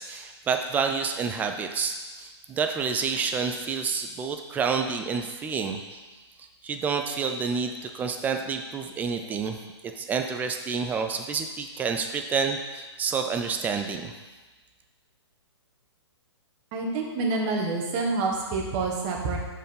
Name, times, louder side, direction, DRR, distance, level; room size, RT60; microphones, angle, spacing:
voice 1, 0.0-6.0 6.6-9.6 9.8-14.1, right 5 dB, 10° right, 5 dB, 0.3 m, -29 dB
voice 2, 16.7-19.4, right 3 dB, 35° right, 0 dB, 1.5 m, -27 dB
7.1 x 4.6 x 5.5 m, 1.3 s
hypercardioid pair, 135°, 15 cm